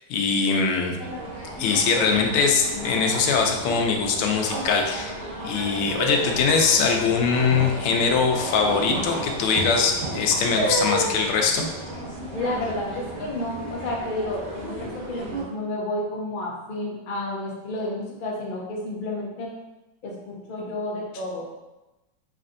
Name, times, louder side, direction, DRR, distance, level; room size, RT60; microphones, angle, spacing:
voice 1, 0.1-1.0 1.6-5.1 5.4-11.7, left 5 dB, 85° left, 2 dB, 1.5 m, -22 dB
sound 1, 1.0-15.4, right 1 dB, 60° right, 1.7 m, -32 dB
voice 2, 12.3-19.5 20.0-21.4, left 1 dB, 55° left, -3 dB, 0.5 m, -31 dB
5.1 x 3.3 x 2.6 m, 1.0 s
omnidirectional pair, 2.2 m